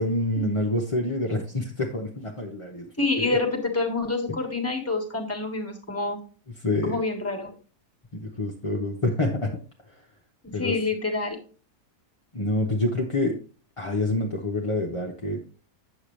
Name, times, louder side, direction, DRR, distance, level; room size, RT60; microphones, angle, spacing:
voice 1, 0.0-2.9 3.2-3.4 4.3-4.4 6.6-7.0 8.1-9.6 10.5-10.8 12.3-13.4 13.8-15.4, left 2 dB, 25° left, -1 dB, 0.7 m, -27 dB
voice 2, 3.0-6.2 6.8-7.5 10.4-11.4, left 3 dB, 10° left, 3 dB, 1.3 m, -27 dB
8.4 x 6.9 x 3.2 m, 0.38 s
omnidirectional pair, 1.7 m